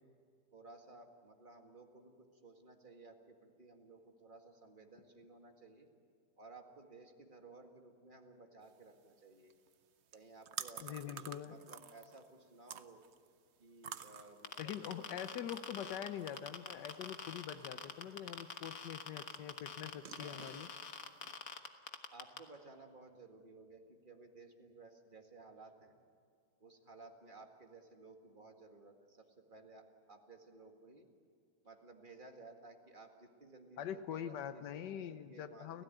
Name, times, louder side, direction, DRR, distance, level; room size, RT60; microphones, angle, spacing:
voice 1, 0.5-5.9 6.4-9.5 10.1-11.1 11.4-13.1 13.6-14.9 15.8-16.0 20.2-20.5 22.1-26.0 26.6-31.1 31.6-35.8, right 3 dB, 30° right, 3 dB, 2.1 m, -57 dB
sound 1, 8.6-21.3, right 8 dB, 55° right, 0.9 m, -53 dB
voice 2, 10.8-11.6 14.6-20.7 33.8-35.8, left 9 dB, 85° left, 11 dB, 1.5 m, -44 dB
sound 2, 14.4-22.4, left 6 dB, 55° left, 1.7 m, -45 dB
29.5 x 15.5 x 9.1 m, 2.2 s
omnidirectional pair, 1.8 m